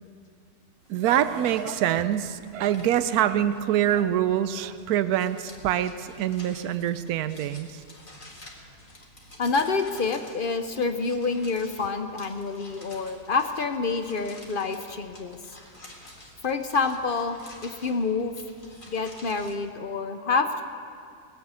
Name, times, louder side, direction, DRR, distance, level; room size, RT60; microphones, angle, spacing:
sound 1, 0.8-19.6, left 1 dB, 35° left, 2.0 m, -49 dB
voice 1, 0.9-7.8, right 11 dB, 80° right, 12 dB, 1.1 m, -25 dB
voice 2, 9.4-15.4 16.4-18.4 18.9-20.6, left 4 dB, 55° left, 7 dB, 0.6 m, -27 dB
20.0 x 8.1 x 8.2 m, 2.3 s
omnidirectional pair, 1.6 m